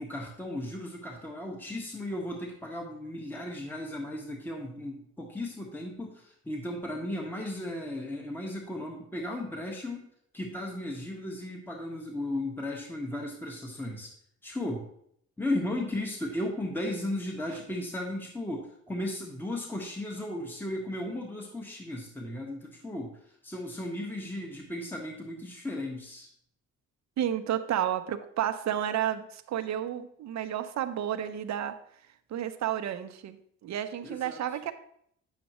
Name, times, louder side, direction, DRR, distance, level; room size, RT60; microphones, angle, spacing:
voice 1, 0.0-10.1 10.3-14.1 14.4-14.9 15.4-26.3 34.0-34.4, left 1 dB, 5° left, 0 dB, 1.4 m, -35 dB
voice 2, 27.2-31.8 32.3-34.7, right 10 dB, 65° right, 9 dB, 0.8 m, -31 dB
9.1 x 7.3 x 3.1 m, 0.69 s
cardioid pair, 90°, 30 cm